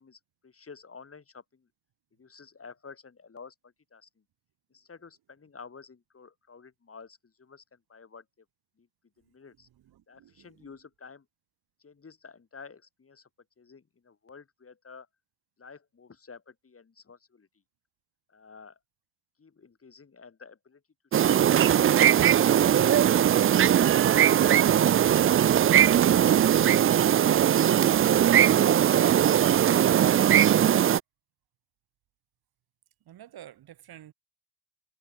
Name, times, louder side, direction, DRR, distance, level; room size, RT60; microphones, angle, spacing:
voice 1, 0.0-1.7 2.1-4.2 4.7-8.5 8.8-8.9 9.2-9.7 10.1-11.3 11.8-13.3 13.6-15.1 15.6-17.5 18.3-18.8 19.4-20.8 21.1-22.5 22.9-23.5 25.6-27.4, left 5 dB, 35° left, 4.0 m, -50 dB
voice 2, 9.7-10.7 33.0-34.1, right 12 dB, 75° right, 4.8 m, -50 dB
sound 1, 21.1-31.0, right 10 dB, 35° right, 0.4 m, -20 dB
cardioid pair, 70°, 37 cm